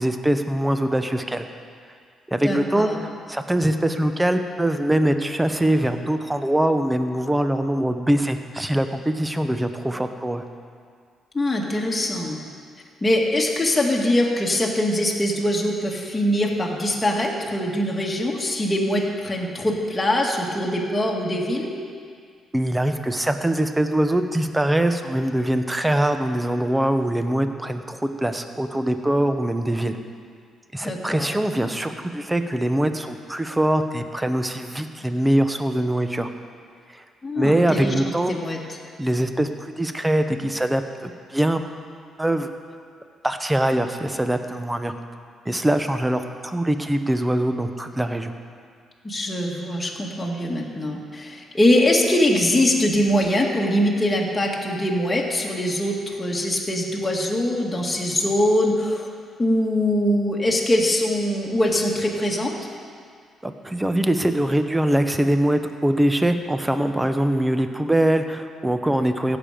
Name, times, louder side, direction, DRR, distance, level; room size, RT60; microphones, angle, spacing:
voice 1, 0.0-1.5 2.3-10.4 22.5-30.0 30.7-36.3 36.9-37.0 37.3-38.3 39.0-41.6 42.2-42.5 43.2-44.9 45.4-48.3 63.4-69.4, right 1 dB, 10° right, 7 dB, 0.8 m, -23 dB
voice 2, 2.4-3.0 11.3-12.4 13.0-21.7 30.8-31.3 37.2-38.6 49.0-59.1 59.4-62.5, left 1 dB, 15° left, -2 dB, 1.8 m, -22 dB
17.0 x 7.0 x 5.1 m, 2.1 s
cardioid pair, 90°, 0 cm